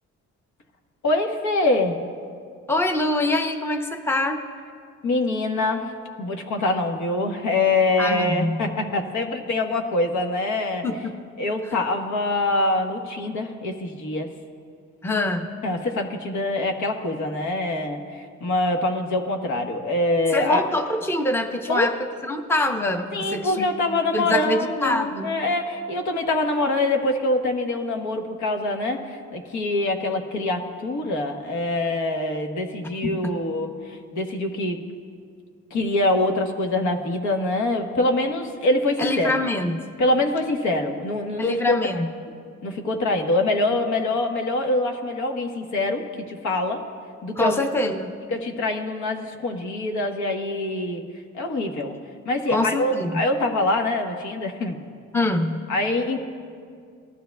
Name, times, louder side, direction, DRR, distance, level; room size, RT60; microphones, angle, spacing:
voice 1, 1.0-2.0 5.0-10.9 11.4-14.3 15.6-20.6 21.7-21.9 23.1-34.8 35.7-39.4 40.0-41.8 42.6-46.8 47.2-47.6 48.3-51.0 51.3-52.0 52.2-54.8 55.7-56.2, left 2 dB, 70° left, 4 dB, 1.3 m, -24 dB
voice 2, 2.7-4.4 8.0-8.7 10.8-11.2 15.0-15.5 20.3-22.0 22.2-23.7 24.1-25.3 33.0-33.3 39.0-39.8 41.4-42.1 47.4-48.1 52.5-53.2 55.1-55.6, left 2 dB, 10° left, 5 dB, 0.7 m, -24 dB
19.0 x 12.5 x 2.3 m, 2.2 s
cardioid pair, 90°, 30 cm